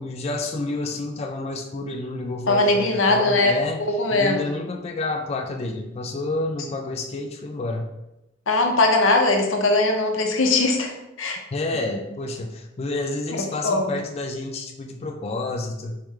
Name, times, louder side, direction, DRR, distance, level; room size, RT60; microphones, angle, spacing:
voice 1, 0.0-3.8 4.1-7.9 11.5-16.0, left 2 dB, 30° left, 3 dB, 0.4 m, -29 dB
voice 2, 2.5-3.6 3.9-4.5 8.5-10.9 11.2-11.4 13.6-14.0, left 2 dB, 90° left, 3 dB, 0.7 m, -20 dB
4.6 x 3.7 x 3.1 m, 0.93 s
head